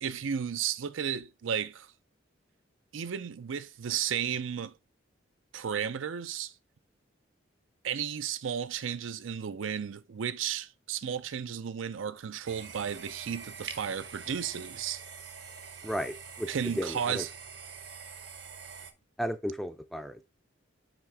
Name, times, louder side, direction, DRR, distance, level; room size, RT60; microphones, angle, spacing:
voice 1, 0.0-1.9 2.9-4.7 5.5-6.5 7.8-15.0 16.5-17.3, right 8 dB, 85° right, 0.5 m, -33 dB
sound 1, 12.4-18.9, right 6 dB, 60° right, 0.9 m, -45 dB
voice 2, 15.8-16.5 16.7-17.2 19.2-20.2, equal, ahead, 0.4 m, -34 dB
6.0 x 4.8 x 3.4 m
head